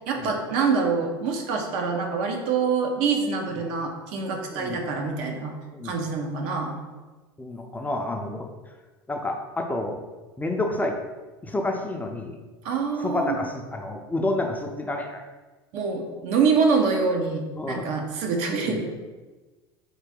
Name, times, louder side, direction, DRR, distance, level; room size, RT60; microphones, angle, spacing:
voice 1, 0.1-5.5 5.8-6.7 12.6-13.5 15.7-18.9, right 5 dB, 60° right, 2 dB, 0.7 m, -25 dB
voice 2, 7.4-8.5 9.1-10.0 10.4-11.0 11.4-12.4 13.0-15.2 17.5-17.9 18.6-18.8, left 2 dB, 15° left, 2 dB, 0.5 m, -29 dB
3.8 x 2.7 x 3.6 m, 1.2 s
hypercardioid pair, 90°, 13 cm